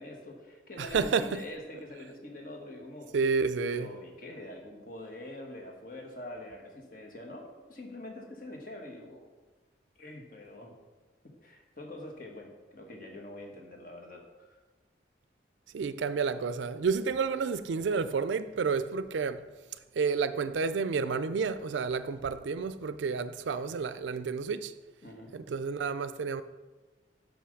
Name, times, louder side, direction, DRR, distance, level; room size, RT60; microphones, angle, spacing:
voice 1, 0.0-3.1 3.7-9.3 9.9-10.7 11.4-14.2 14.5-14.6 25.0-25.3, left 1 dB, 45° left, 1.3 m, -45 dB
voice 2, 0.8-1.4 3.1-3.9 15.7-19.4 20.0-24.7 25.3-26.4, right 5 dB, 80° right, 0.4 m, -30 dB
5.7 x 5.3 x 6.3 m
head